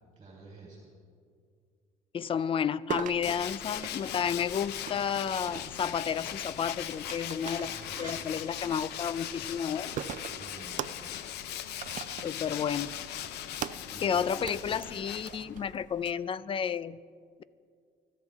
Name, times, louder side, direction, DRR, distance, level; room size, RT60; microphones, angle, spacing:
voice 1, 0.2-0.9 7.4-8.3 10.3-11.2 13.9-14.6, right 3 dB, 30° right, -3 dB, 3.8 m, -50 dB
voice 2, 2.1-7.7 8.0-9.9 12.2-13.0 14.0-17.0, left 7 dB, 30° left, 18 dB, 0.4 m, -31 dB
sound 1, 2.9-16.1, right 10 dB, 50° right, 0.5 m, -43 dB
Tools, 3.2-15.7, left 11 dB, 80° left, 0.8 m, -39 dB
24.5 x 13.5 x 3.6 m, 2.1 s
cardioid pair, 110°, 17 cm